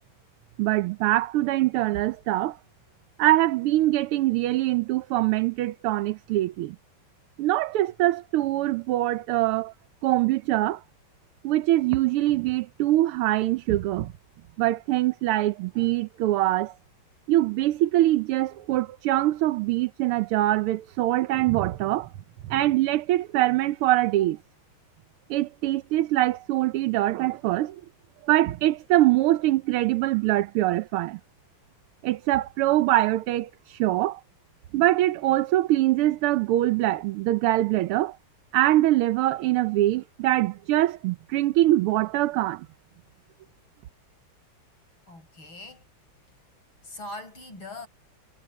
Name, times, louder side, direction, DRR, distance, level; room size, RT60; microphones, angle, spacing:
voice 1, 0.6-2.6 3.2-6.7 7.4-9.7 10.0-10.8 11.4-14.1 14.6-16.7 17.3-22.1 22.5-24.4 25.3-27.8 28.2-31.2 32.0-34.2 34.7-38.2 38.5-42.7, right 15 dB, 85° right, 1.6 m, -23 dB
voice 2, 45.1-45.8 46.8-47.9, left 2 dB, 65° left, 6.5 m, -41 dB
omnidirectional pair, 2.4 m